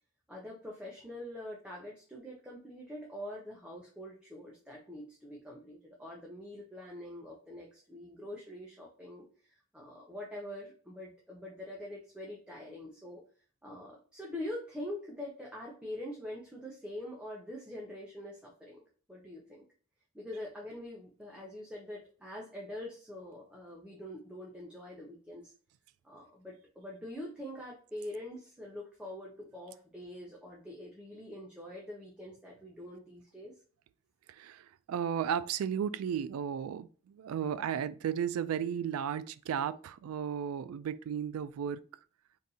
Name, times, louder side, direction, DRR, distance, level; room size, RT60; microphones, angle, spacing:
voice 1, 0.3-13.2 13.6-18.8 19.1-19.6 20.1-25.5 26.0-33.5, left 1 dB, 5° right, 0.6 m, -44 dB
voice 2, 34.3-41.8, right 8 dB, 80° right, 0.3 m, -34 dB
3.8 x 2.6 x 2.7 m
head